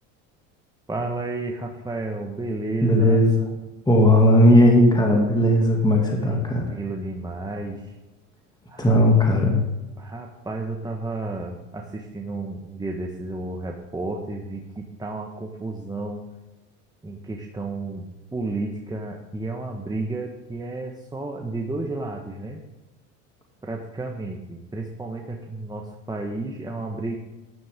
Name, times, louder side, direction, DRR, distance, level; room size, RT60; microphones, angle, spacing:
voice 1, 0.9-3.2 6.2-6.4 6.7-7.9 8.7-9.0 10.0-16.2 17.0-18.0 18.3-22.6 23.6-27.2, right 2 dB, 10° right, 1 dB, 1.5 m, -32 dB
voice 2, 2.8-3.4 3.9-6.7 8.8-9.6, left 1 dB, 10° left, 0 dB, 2.5 m, -17 dB
13.0 x 11.5 x 3.7 m, 1.1 s
hypercardioid pair, 90°, 39 cm